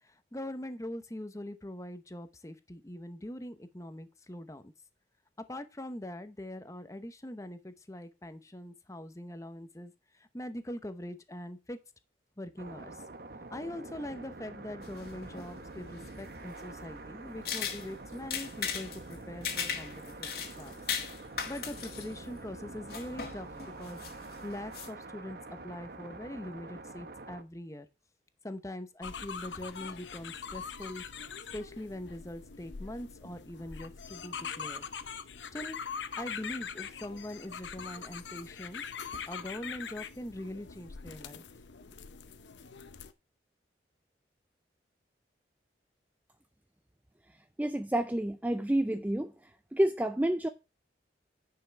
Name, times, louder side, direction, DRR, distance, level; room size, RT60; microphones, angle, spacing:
voice 1, 0.0-4.7 5.5-11.8 12.4-13.0 13.5-20.3 20.6-20.8 21.5-23.5 23.8-24.0 24.2-27.9 28.4-31.0 31.5-34.8 35.5-35.8 36.2-38.8 39.1-41.4, left 1 dB, 15° left, 0.8 m, -42 dB
sound 1, 12.6-27.4, right 2 dB, 55° right, 0.9 m, -46 dB
sound 2, 14.8-24.9, left 7 dB, 55° left, 2.0 m, -39 dB
sound 3, 29.0-43.1, left 6 dB, 80° left, 0.8 m, -43 dB
voice 2, 47.6-49.3 49.7-50.5, right 1 dB, 10° right, 0.4 m, -29 dB
10.0 x 5.7 x 4.5 m
head